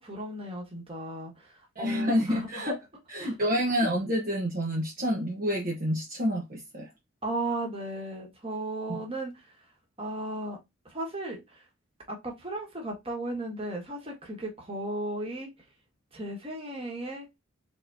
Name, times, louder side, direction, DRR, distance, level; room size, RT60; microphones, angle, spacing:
voice 1, 0.0-2.7 3.2-3.3 7.2-9.6 10.0-10.6 10.8-11.7 12.1-15.5 16.1-17.3, right 1 dB, 30° right, 1.6 m, -35 dB
voice 2, 1.8-2.7 3.1-6.9 8.9-9.0, equal, 45° right, 1.0 m, -28 dB
4.3 x 3.5 x 2.6 m
head